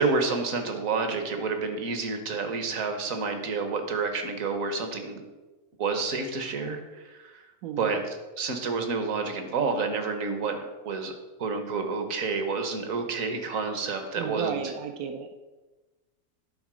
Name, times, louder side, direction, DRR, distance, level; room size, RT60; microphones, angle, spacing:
voice 1, 0.0-5.2 5.8-7.4 7.8-11.1 11.4-14.6, right 4 dB, 65° right, 6 dB, 1.5 m, -29 dB
voice 2, 7.6-8.0 14.2-15.4, right 7 dB, 85° right, 4 dB, 1.1 m, -33 dB
10.5 x 4.0 x 6.2 m, 1.2 s
omnidirectional pair, 1.5 m